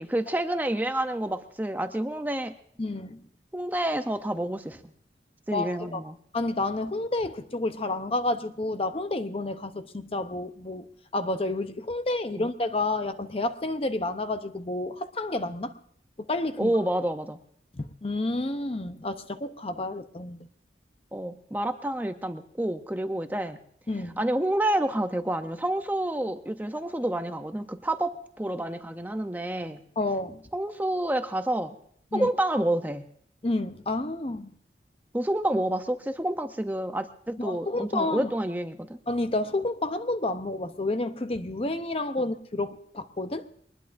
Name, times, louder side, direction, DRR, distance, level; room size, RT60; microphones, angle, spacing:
voice 1, 0.0-2.6 3.5-4.8 5.5-6.2 12.3-12.5 16.6-17.4 21.1-23.6 24.2-29.8 30.5-31.8 32.1-33.1 35.1-39.0, right 1 dB, 10° right, 8 dB, 0.6 m, -29 dB
voice 2, 2.8-3.2 5.5-6.0 6.3-10.9 11.1-15.7 16.2-16.7 17.7-20.5 23.9-24.2 30.0-30.4 32.1-32.3 33.4-34.5 37.4-38.3 39.1-43.5, left 2 dB, 35° left, 10 dB, 0.7 m, -30 dB
22.5 x 20.0 x 2.6 m, 0.65 s
head